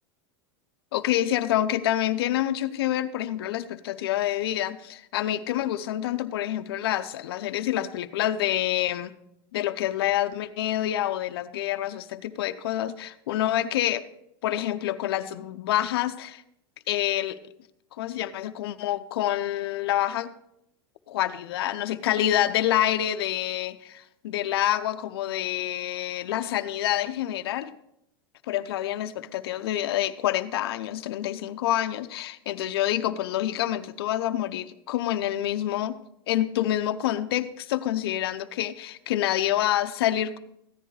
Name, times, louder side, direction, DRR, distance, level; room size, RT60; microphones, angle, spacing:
voice 1, 0.9-9.1 9.5-14.1 14.4-16.4 16.9-17.4 18.0-20.3 21.1-27.7 28.5-36.0 36.3-40.4, left 13 dB, 85° left, 9 dB, 0.6 m, -27 dB
14.5 x 10.0 x 3.2 m, 0.77 s
supercardioid pair, 145°, 13 cm